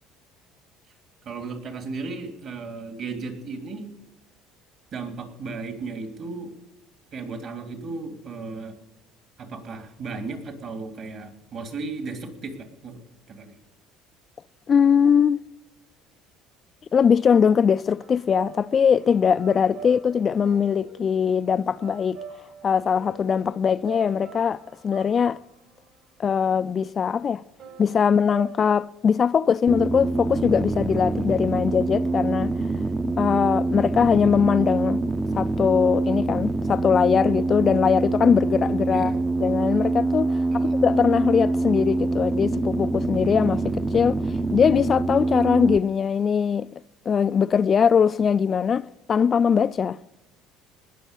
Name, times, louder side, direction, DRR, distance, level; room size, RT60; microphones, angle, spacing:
voice 1, 1.2-3.9 4.9-6.5 7.1-8.7 9.4-13.0 13.3-13.5 38.9-39.2 40.5-40.7, right 4 dB, 55° right, 3.1 m, -35 dB
voice 2, 14.7-15.4 16.9-22.2 22.6-25.4 26.2-27.4 27.8-32.5 33.2-35.0 35.4-39.1 39.4-40.4 40.8-44.2 44.5-46.7 47.1-50.0, left 7 dB, 35° left, 0.4 m, -21 dB
sound 1, 18.0-26.8 27.6-28.8, right 4 dB, 70° right, 4.7 m, -45 dB
sound 2, 29.7-45.8, right 2 dB, 15° right, 0.6 m, -25 dB
19.5 x 6.5 x 8.3 m
supercardioid pair, 100°, 0 cm